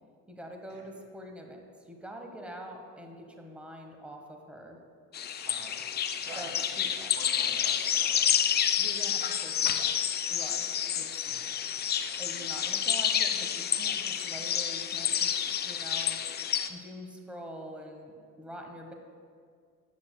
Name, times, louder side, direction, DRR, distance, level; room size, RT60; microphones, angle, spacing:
voice 1, 0.3-4.8 6.4-6.5 6.8-7.1 8.8-9.9 10.3-10.6 10.9-11.1 12.2-16.2 16.7-18.9, equal, 5° right, 2 dB, 1.3 m, -45 dB
sound 1, 5.1-16.7, left 9 dB, 25° left, 0.5 m, -29 dB
voice 2, 5.4-5.8 6.2-8.2 11.2-11.7, right 2 dB, 80° right, -1 dB, 2.4 m, -47 dB
17.0 x 8.3 x 2.2 m, 2.1 s
hypercardioid pair, 75°, 43 cm